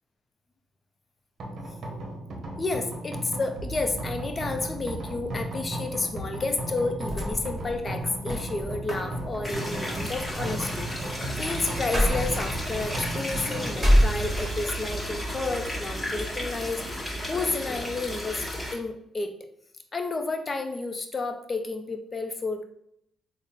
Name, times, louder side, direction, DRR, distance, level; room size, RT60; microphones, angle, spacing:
sound 1, 1.4-18.6, right 2 dB, 60° right, 0.7 m, -36 dB
voice 1, 2.6-16.8 17.3-18.5 18.7-19.3 19.9-22.6, left 3 dB, 30° left, 6 dB, 0.5 m, -31 dB
sound 2, 7.1-14.8 15.2-16.0, equal, 15° right, 1.3 m, -29 dB
sound 3, 9.4-18.7, left 1 dB, 15° left, 1.3 m, -34 dB
3.6 x 2.0 x 4.0 m, 0.72 s
cardioid pair, 90°, 0 cm